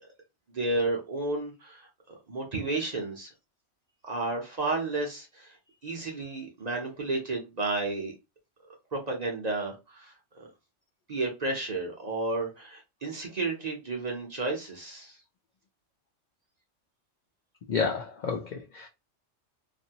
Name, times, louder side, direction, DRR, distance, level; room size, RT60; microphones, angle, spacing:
voice 1, 0.5-3.3 4.0-5.6 5.8-8.1 8.9-10.5 11.1-15.2, right 2 dB, 40° right, 0.7 m, -32 dB
voice 2, 17.7-18.9, left 5 dB, 70° left, 0.4 m, -30 dB
2.6 x 2.6 x 2.8 m
omnidirectional pair, 1.3 m